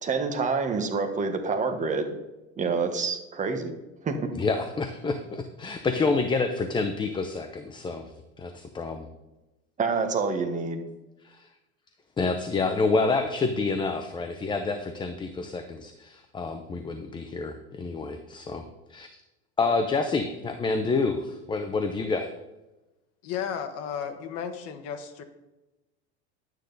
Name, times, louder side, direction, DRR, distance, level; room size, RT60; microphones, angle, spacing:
voice 1, 0.0-2.2 2.6-3.7 4.0-4.3 9.8-10.9, right 4 dB, 20° right, 5 dB, 1.3 m, -27 dB
voice 2, 4.3-8.1 8.4-9.1 11.2-11.5 12.2-18.6 18.9-19.1 19.6-22.3, left 3 dB, 15° left, 7 dB, 0.7 m, -28 dB
voice 3, 23.2-25.2, left 8 dB, 50° left, 8 dB, 1.3 m, -34 dB
11.5 x 9.1 x 4.0 m, 1.0 s
supercardioid pair, 135°, 33 cm